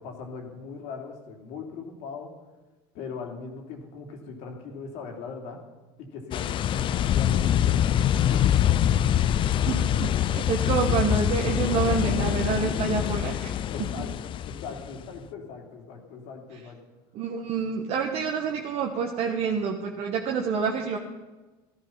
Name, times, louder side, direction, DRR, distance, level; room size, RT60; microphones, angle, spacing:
voice 1, 0.0-2.3 2.9-5.6 6.0-8.5 13.7-14.1 14.4-16.8, left 5 dB, 65° left, 2 dB, 3.0 m, -40 dB
sound 1, 6.3-15.0, left 10 dB, 45° left, 0.6 m, -24 dB
voice 2, 9.6-13.6 14.0-14.1 17.1-21.0, right 6 dB, 55° right, 1 dB, 1.4 m, -28 dB
13.5 x 12.5 x 5.7 m, 1.2 s
supercardioid pair, 90°, 12 cm